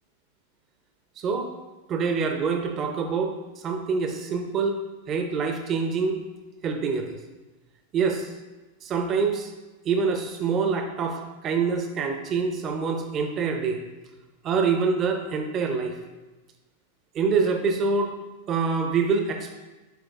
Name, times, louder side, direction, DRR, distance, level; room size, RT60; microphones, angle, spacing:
voice 1, 1.2-1.5 1.9-3.3 3.6-4.8 5.1-6.1 6.6-7.2 7.9-8.3 8.8-9.5 9.8-13.8 14.4-16.0 17.1-18.1 18.5-19.6, right 5 dB, 30° right, 4 dB, 0.9 m, -25 dB
10.5 x 5.0 x 2.5 m, 1.2 s
figure-of-eight pair, 90°, 0 cm